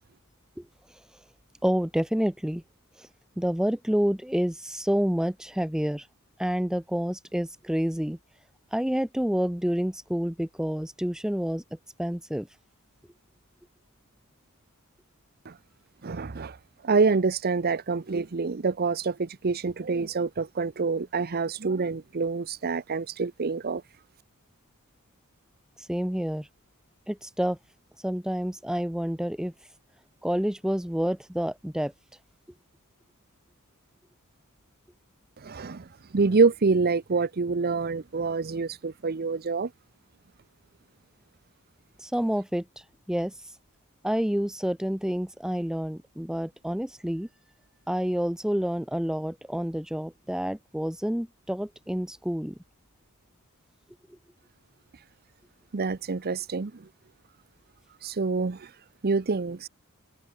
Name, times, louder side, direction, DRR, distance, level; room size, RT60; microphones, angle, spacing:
voice 1, 1.6-2.6 3.0-3.1 3.4-6.1 6.4-8.2 8.7-11.6 12.0-12.5 25.9-26.5 27.1-27.6 28.0-29.5 30.2-31.9 42.0-42.6 43.1-43.3 44.0-47.3 47.9-52.5, equal, 5° right, 0.5 m, -28 dB
voice 2, 16.0-16.6 16.8-23.8 35.4-39.7 55.7-56.9 58.0-58.7 59.0-59.7, right 4 dB, 45° right, 0.7 m, -26 dB
head